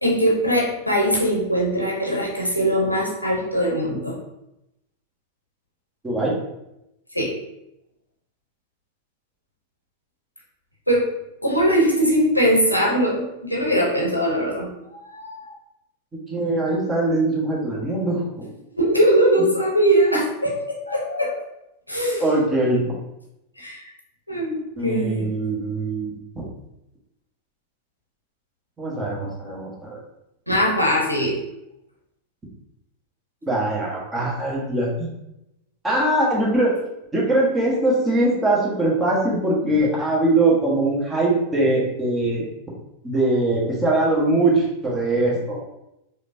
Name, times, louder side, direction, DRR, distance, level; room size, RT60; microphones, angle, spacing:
voice 1, 0.0-4.2 7.1-7.3 10.9-11.0 11.4-15.5 18.7-21.4 21.9-22.2 23.6-23.8 24.3-24.6 24.8-25.3 30.5-31.4, equal, 90° left, -3 dB, 0.9 m, -21 dB
voice 2, 6.0-6.3 16.3-18.2 22.2-22.8 24.8-26.4 28.8-30.0 33.5-35.1 35.8-36.8 37.1-42.4 43.0-45.6, right 2 dB, 15° right, -4 dB, 1.2 m, -21 dB
5.0 x 2.6 x 2.7 m, 0.86 s
figure-of-eight pair, 90°, 0 cm